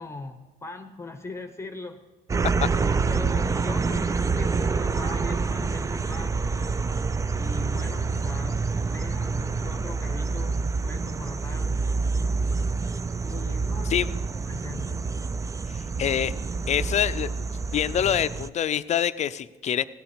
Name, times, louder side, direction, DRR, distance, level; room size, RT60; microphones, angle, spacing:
voice 1, 0.0-2.0 2.8-6.8 7.4-11.7 13.2-15.0, left 3 dB, 15° left, 8 dB, 0.9 m, -40 dB
sound 1, 2.3-18.5, right 4 dB, 20° right, 0.4 m, -27 dB
voice 2, 15.7-16.3 16.7-17.4 17.7-19.8, left 9 dB, 45° left, 13 dB, 0.5 m, -25 dB
16.5 x 9.1 x 5.0 m, 1.2 s
cardioid pair, 110°, 17 cm